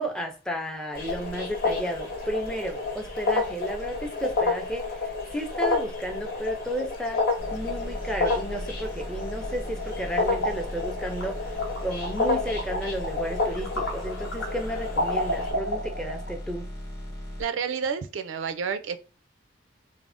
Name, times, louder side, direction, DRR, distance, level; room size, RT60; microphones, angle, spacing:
voice 1, 0.0-7.2 7.5-11.4 11.8-16.7, equal, 5° left, 0.4 m, -33 dB
sound 1, 0.9-15.5, left 3 dB, 55° left, 0.9 m, -30 dB
sound 2, 7.4-17.4, equal, 20° left, 0.8 m, -38 dB
sound 3, 9.8-16.4, equal, 85° left, 1.0 m, -33 dB
voice 2, 17.4-19.0, right 6 dB, 90° right, 0.4 m, -30 dB
3.2 x 2.0 x 2.5 m
head